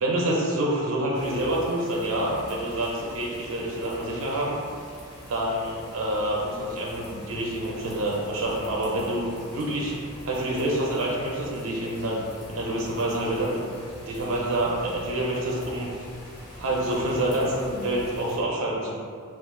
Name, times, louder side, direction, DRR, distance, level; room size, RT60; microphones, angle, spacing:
voice 1, 0.0-4.6 5.3-9.3 9.5-9.9 10.2-12.2 12.5-13.6 14.0-15.9 16.6-19.0, right 1 dB, 65° right, -3 dB, 0.5 m, -27 dB
sound 1, 1.1-18.4, equal, 85° left, 0.8 m, -44 dB
3.5 x 2.3 x 2.2 m, 2.2 s
head